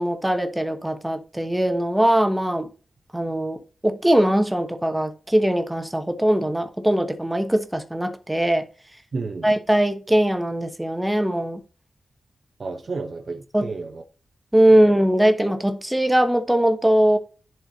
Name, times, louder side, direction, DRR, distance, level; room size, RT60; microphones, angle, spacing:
voice 1, 0.0-2.7 3.1-3.6 3.8-8.7 9.4-11.6 13.5-13.7 14.5-17.2, right 1 dB, 5° right, 1.0 m, -20 dB
voice 2, 9.1-9.5 12.6-14.0 14.7-14.9, right 3 dB, 45° right, 0.8 m, -31 dB
11.0 x 4.5 x 4.0 m
wide cardioid pair, 150°, 0 cm